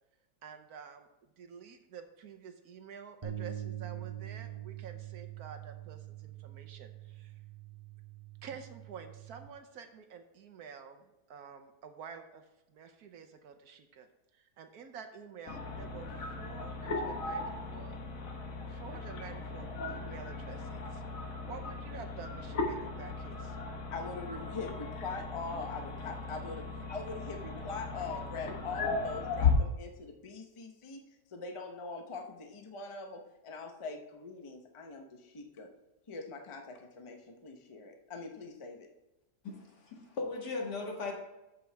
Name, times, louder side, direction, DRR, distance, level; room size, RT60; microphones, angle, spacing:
voice 1, 0.4-1.1 1.4-7.3 8.4-12.4 12.7-14.1 14.3-18.0 18.6-23.6, right 6 dB, 65° right, 7 dB, 1.2 m, -49 dB
sound 1, 3.2-9.5, right 12 dB, 30° right, 0.6 m, -44 dB
sound 2, 15.5-29.5, left 4 dB, 55° left, 1.4 m, -37 dB
voice 2, 23.9-31.0 31.3-35.7 36.1-38.9, left 4 dB, 25° left, 3 dB, 0.7 m, -42 dB
voice 3, 39.4-41.1, left 3 dB, 75° left, 0 dB, 2.2 m, -38 dB
14.0 x 5.2 x 3.4 m, 0.98 s
omnidirectional pair, 1.8 m